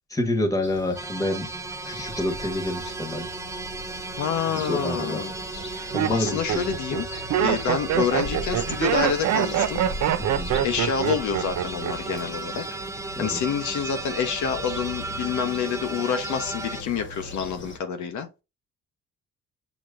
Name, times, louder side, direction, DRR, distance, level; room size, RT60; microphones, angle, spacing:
voice 1, 0.1-1.5 1.8-3.3 4.7-5.2 5.9-7.0 10.2-10.5 13.2-13.4, left 1 dB, 10° left, 1.3 m, -28 dB
sound 1, 0.6-17.8, left 2 dB, 40° left, 1.1 m, -40 dB
sound 2, 0.9-16.8, right 3 dB, 10° right, 0.3 m, -35 dB
voice 2, 4.2-5.3 6.1-7.1 7.4-9.8 10.6-12.6 13.2-18.3, left 7 dB, 70° left, 0.9 m, -27 dB
Laughter, 4.5-4.9 5.6-12.2 12.5-13.0, right 10 dB, 65° right, 0.6 m, -25 dB
7.1 x 3.0 x 2.5 m
cardioid pair, 90°, 30 cm